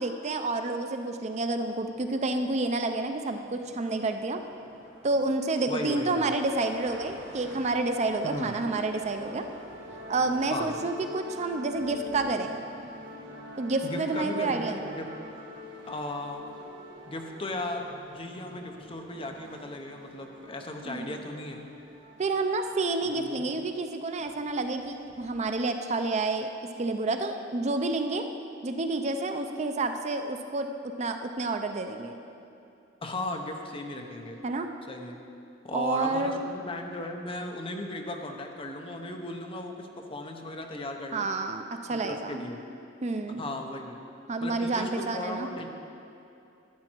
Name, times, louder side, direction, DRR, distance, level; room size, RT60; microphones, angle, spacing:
voice 1, 0.0-4.4 5.0-9.4 10.1-12.6 13.6-14.9 20.9-21.2 22.2-26.5 26.8-28.3 28.6-30.7 31.0-32.2 34.4-34.7 35.7-36.4 41.1-42.4 43.0-43.5 44.3-45.5, right 3 dB, 35° right, 6 dB, 0.5 m, -29 dB
sound 1, 1.6-10.8, equal, 10° right, 2.9 m, -53 dB
voice 2, 5.7-6.3 8.2-8.6 10.5-10.7 13.8-15.1 15.9-16.4 17.1-17.9 18.1-21.6 23.0-23.5 33.0-34.4 34.9-35.2 35.6-41.3 41.9-42.6 43.4-44.0 44.4-45.7, left 2 dB, 30° left, 3 dB, 0.8 m, -36 dB
sound 2, 6.8-25.6, left 1 dB, 80° right, 1.5 m, -46 dB
12.0 x 8.7 x 4.5 m, 2.7 s
head